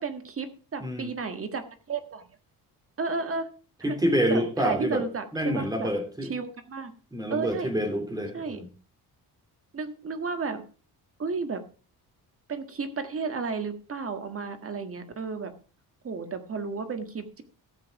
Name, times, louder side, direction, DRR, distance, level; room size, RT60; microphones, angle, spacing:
voice 1, 0.0-2.3 3.0-3.5 3.8-4.0 4.3-5.9 6.2-6.9 7.3-7.7 8.3-8.6 9.7-10.6 11.2-11.6 12.5-15.5 16.0-17.4, right 4 dB, 35° right, 9 dB, 1.7 m, -33 dB
voice 2, 0.8-1.1 3.8-5.0 5.3-6.3 7.1-8.7, equal, 10° right, 5 dB, 3.2 m, -27 dB
14.0 x 7.5 x 4.7 m, 0.38 s
cardioid pair, 130°, 38 cm